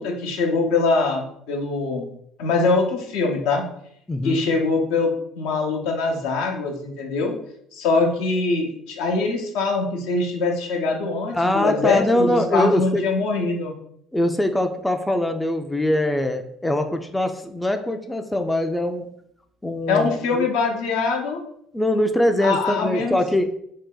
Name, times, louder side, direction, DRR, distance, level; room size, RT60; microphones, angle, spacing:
voice 1, 0.0-2.1 2.4-3.6 4.2-7.3 7.7-13.7 19.9-21.4 22.4-23.2, left 3 dB, 70° left, 1 dB, 0.6 m, -23 dB
voice 2, 4.1-4.4 11.3-13.0 14.1-19.1 19.6-20.5 21.7-23.5, left 1 dB, 10° left, 6 dB, 0.3 m, -22 dB
2.7 x 2.1 x 3.8 m, 0.71 s
hypercardioid pair, 60°, 0 cm